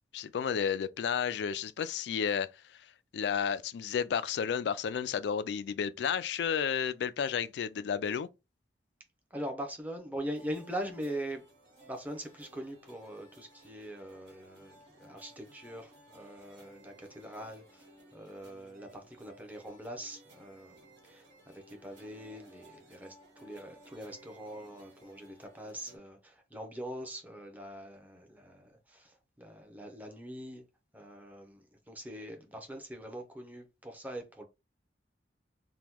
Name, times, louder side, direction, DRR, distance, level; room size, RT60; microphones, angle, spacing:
voice 1, 0.1-2.9 3.1-8.3, left 7 dB, 70° left, 0.3 m, -32 dB
voice 2, 9.3-11.4 11.8-30.6 30.9-34.4, equal, 10° right, 0.7 m, -42 dB
sound 1, 10.2-26.0, right 1 dB, 80° right, 1.5 m, -58 dB
2.9 x 2.2 x 3.5 m
head